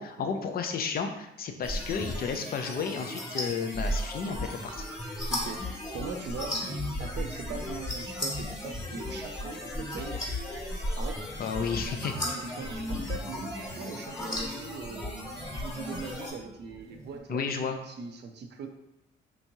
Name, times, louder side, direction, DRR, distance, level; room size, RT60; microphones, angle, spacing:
voice 1, 0.0-4.8 11.4-12.1 17.3-17.8, left 5 dB, 50° left, 5 dB, 0.5 m, -32 dB
sound 1, 1.6-16.3, left 1 dB, 20° left, 1.4 m, -35 dB
voice 2, 5.3-6.6 7.0-10.2 10.9-11.2 11.7-13.4 13.7-18.7, right 5 dB, 60° right, 5 dB, 0.5 m, -41 dB
sound 2, 5.9-17.2, equal, 15° right, 0.8 m, -43 dB
3.5 x 3.0 x 2.7 m, 0.85 s
cardioid pair, 90°, 20 cm